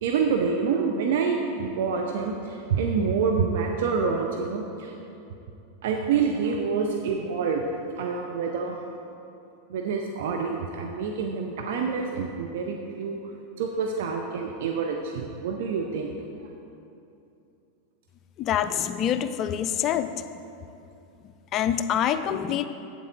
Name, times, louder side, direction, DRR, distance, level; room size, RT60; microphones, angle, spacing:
voice 1, 0.0-4.9 5.8-7.6 8.0-8.8 9.7-13.2 13.6-16.2, right 5 dB, 70° right, 2 dB, 0.6 m, -27 dB
voice 2, 18.4-20.1 21.5-22.7, left 9 dB, 40° left, 11 dB, 0.4 m, -25 dB
8.5 x 7.4 x 4.0 m, 2.7 s
hypercardioid pair, 95°, 0 cm